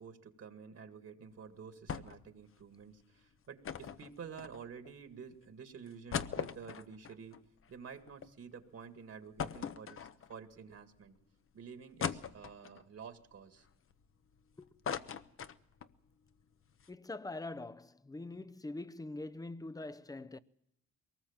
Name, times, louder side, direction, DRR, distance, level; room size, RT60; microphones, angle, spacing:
voice 1, 0.0-7.4 7.7-11.2 11.5-13.7, right 6 dB, 55° right, 2.1 m, -50 dB
sound 1, 1.9-2.3 2.6-2.7 3.6-4.9 5.4-5.5 5.9-8.3 8.7-8.8 9.4-10.5 11.0-11.1 12.0-12.8 13.4-14.4 14.6-16.0 16.3-16.4 16.7-16.9, left 7 dB, 45° left, 1.0 m, -40 dB
voice 2, 16.9-20.4, left 2 dB, 10° left, 0.8 m, -44 dB
22.5 x 19.5 x 7.3 m
cardioid pair, 90°, 30 cm